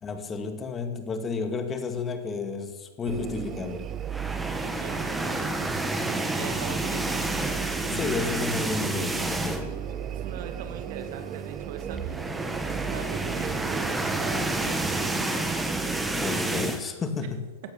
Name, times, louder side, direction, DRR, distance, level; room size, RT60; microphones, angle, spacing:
voice 1, 0.0-3.9 7.8-9.8 16.1-17.5, left 4 dB, 20° left, 7 dB, 2.0 m, -32 dB
sound 1, 3.1-16.7, right 9 dB, 25° right, 0.6 m, -37 dB
sound 2, 4.0-9.8 10.2-10.4 10.6-10.7 11.8-16.8, right 2 dB, 5° right, 1.6 m, -29 dB
voice 2, 4.6-5.5 6.3-7.2 9.9-12.3 12.8-15.4, right 7 dB, 60° right, 8 dB, 2.3 m, -41 dB
sound 3, 7.3-13.1, right 6 dB, 85° right, 2.9 m, -48 dB
15.5 x 11.5 x 7.1 m, 1.3 s
hypercardioid pair, 130°, 0 cm